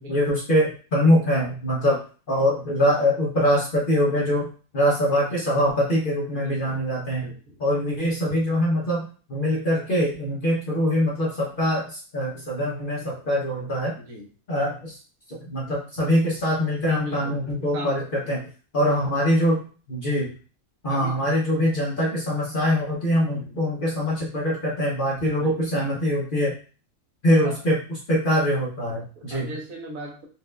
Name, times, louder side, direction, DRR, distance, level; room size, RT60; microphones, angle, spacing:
voice 1, 0.1-2.0 2.3-4.5 4.7-7.3 7.6-14.0 14.5-15.0 15.5-18.4 18.7-19.6 19.9-20.3 20.8-26.6 27.2-27.8 28.1-29.5, equal, 45° left, -4 dB, 0.8 m, -23 dB
voice 2, 6.3-6.8 7.1-7.6 14.1-14.3 17.0-18.0 18.2-18.3 18.9-19.0 20.9-21.2 23.3-23.6 25.4-25.5 27.4-27.6 28.9-30.3, right 1 dB, 70° right, 1 dB, 1.2 m, -38 dB
4.3 x 2.5 x 2.2 m, 0.38 s
omnidirectional pair, 1.6 m